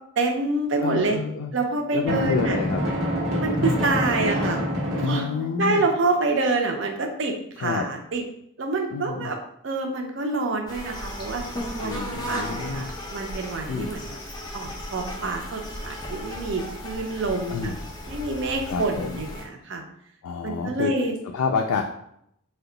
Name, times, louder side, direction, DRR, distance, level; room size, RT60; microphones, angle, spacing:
voice 1, 0.2-1.2 1.5-2.6 3.4-4.6 5.0-5.3 5.6-8.2 8.6-9.4 9.6-11.4 11.8-12.0 12.3-14.2 14.5-17.8 18.1-19.8 20.4-21.2, right 3 dB, 55° right, 3 dB, 0.5 m, -27 dB
voice 2, 0.8-1.5 1.9-2.8 3.6-3.8 5.0-5.8 7.6-7.9 8.9-9.3 11.8-12.9 13.7-13.9 17.5-17.8 18.7-19.2 20.2-20.9 21.3-21.8, left 5 dB, 85° left, 3 dB, 0.3 m, -28 dB
Drum, 2.0-5.8, equal, 90° right, 0.9 m, -26 dB
sound 1, 10.7-19.5, left 1 dB, 20° left, 0.4 m, -35 dB
2.8 x 2.2 x 3.8 m, 0.73 s
head